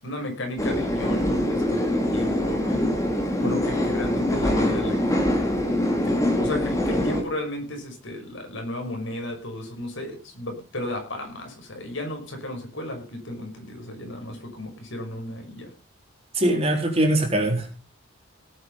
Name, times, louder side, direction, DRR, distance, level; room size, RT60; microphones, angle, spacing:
voice 1, 0.0-3.0 3.4-5.4 6.0-15.7, left 1 dB, 65° left, 3 dB, 5.9 m, -34 dB
sound 1, 0.6-7.2, left 1 dB, 15° left, 2.9 m, -24 dB
voice 2, 16.3-17.7, right 1 dB, 30° right, 2 dB, 3.9 m, -22 dB
18.0 x 8.7 x 5.6 m, 0.37 s
head